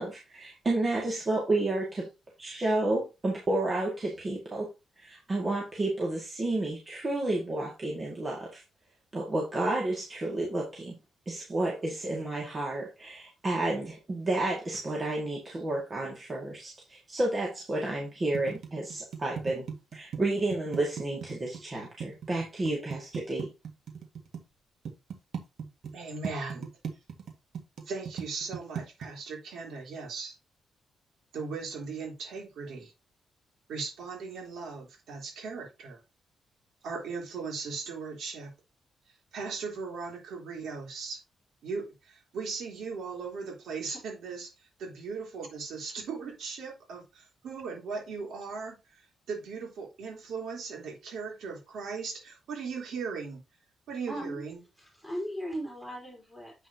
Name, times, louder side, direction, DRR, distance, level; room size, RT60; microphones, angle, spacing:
voice 1, 0.0-2.1 2.4-4.7 5.0-8.6 9.1-10.9 11.3-23.5, right 2 dB, 25° right, 2.1 m, -31 dB
sound 1, 18.3-24.4 24.8-25.9 26.2-29.1, right 7 dB, 60° right, 1.8 m, -37 dB
voice 2, 25.9-26.7 27.8-30.3 31.3-32.9 33.7-36.0 36.8-38.5 39.3-41.2 41.6-44.5 44.8-53.4 53.9-54.6, right 4 dB, 80° right, 3.5 m, -38 dB
voice 3, 54.1-54.4 54.8-56.7, equal, 5° right, 4.0 m, -37 dB
8.0 x 6.1 x 2.9 m
wide cardioid pair, 155°, 0 cm